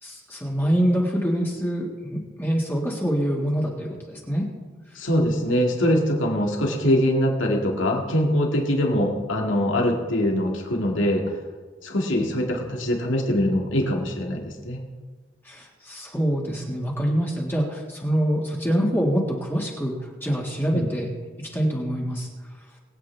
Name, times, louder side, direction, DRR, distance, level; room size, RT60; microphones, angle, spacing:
voice 1, 0.0-4.5 15.4-21.1 21.4-22.3, equal, 10° left, -2 dB, 1.7 m, -25 dB
voice 2, 5.0-11.3 11.8-14.8 20.7-20.9, equal, 80° left, 0 dB, 2.1 m, -23 dB
21.5 x 8.7 x 3.4 m, 1.4 s
head